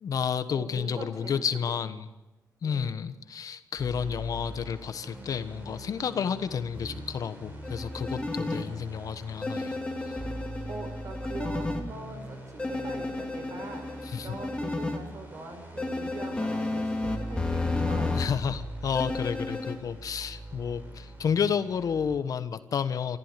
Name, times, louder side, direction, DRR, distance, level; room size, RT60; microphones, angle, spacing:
voice 1, 0.0-2.1 2.6-9.8 10.1-10.2 14.0-14.4 18.1-23.2, left 7 dB, 60° left, 12 dB, 1.3 m, -31 dB
voice 2, 0.5-1.5 2.6-2.9 10.7-18.2, right 2 dB, 55° right, 7 dB, 5.1 m, -42 dB
sound 1, 3.8-22.2, right 1 dB, 25° right, 6.9 m, -42 dB
sound 2, 7.6-8.6 9.4-11.8 12.6-15.0 15.8-18.3 18.9-19.8, left 2 dB, 15° left, 2.8 m, -32 dB
25.5 x 14.0 x 9.2 m, 1.0 s
cardioid pair, 100°, 7 cm